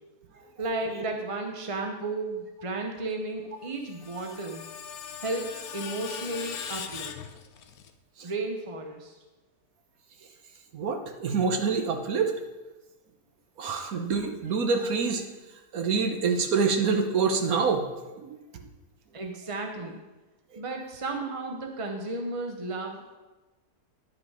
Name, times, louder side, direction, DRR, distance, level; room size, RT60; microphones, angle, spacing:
voice 1, 0.6-4.6 5.2-7.2 8.2-9.1 19.1-20.0 20.6-23.2, right 2 dB, 35° right, 3 dB, 0.5 m, -33 dB
Screech, 3.6-7.9, left 7 dB, 65° left, 1.1 m, -40 dB
voice 2, 10.7-12.3 13.6-15.3 15.7-17.9 18.2-18.7 20.5-20.6, right 5 dB, 60° right, 5 dB, 1.4 m, -26 dB
10.5 x 6.6 x 4.9 m, 1.1 s
omnidirectional pair, 1.8 m